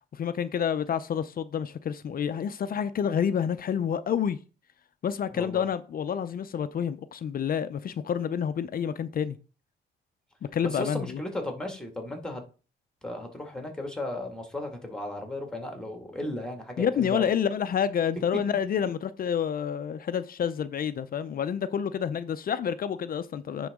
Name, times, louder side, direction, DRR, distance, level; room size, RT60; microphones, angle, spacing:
voice 1, 0.1-4.4 5.0-9.4 10.5-11.2 16.8-23.7, left 8 dB, 45° left, 0.5 m, -28 dB
voice 2, 10.6-12.4 13.0-17.3, left 1 dB, 5° left, 1.9 m, -35 dB
9.9 x 3.8 x 3.6 m
cardioid pair, 90°, 20 cm